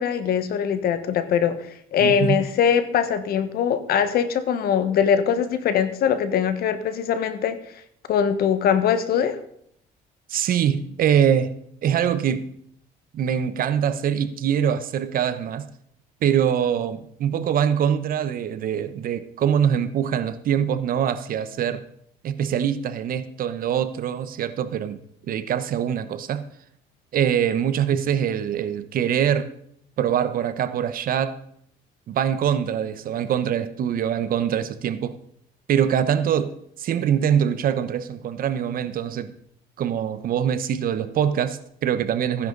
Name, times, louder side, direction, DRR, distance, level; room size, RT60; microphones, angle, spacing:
voice 1, 0.0-7.6 8.1-9.4, left 8 dB, 65° left, 1.3 m, -22 dB
voice 2, 2.0-2.4 10.3-11.5 11.8-12.5 13.1-15.7 16.2-21.8 22.2-25.0 25.3-26.4 27.1-29.5 30.0-31.4 32.1-35.2 35.7-39.3 39.8-42.5, right 9 dB, 60° right, 1.0 m, -23 dB
15.5 x 10.0 x 4.0 m
cardioid pair, 110°, 17 cm